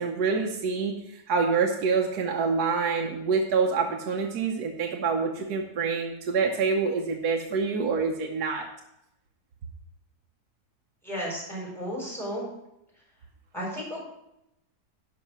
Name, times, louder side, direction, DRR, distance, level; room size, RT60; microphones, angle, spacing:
voice 1, 0.0-8.7, right 5 dB, 70° right, 1 dB, 1.4 m, -26 dB
voice 2, 11.0-12.5 13.5-14.0, equal, ahead, -4 dB, 4.3 m, -33 dB
12.0 x 5.4 x 6.0 m, 0.84 s
omnidirectional pair, 1.7 m